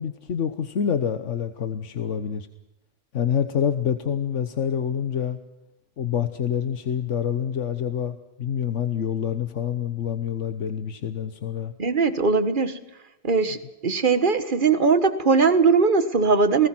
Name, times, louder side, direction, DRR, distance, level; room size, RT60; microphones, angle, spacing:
voice 1, 0.0-2.5 3.1-5.4 6.0-11.7 13.5-13.6, left 8 dB, 90° left, 10 dB, 1.4 m, -27 dB
voice 2, 11.8-12.8 13.2-16.7, right 4 dB, 45° right, 12 dB, 1.6 m, -20 dB
29.0 x 19.0 x 6.1 m, 0.93 s
omnidirectional pair, 1.2 m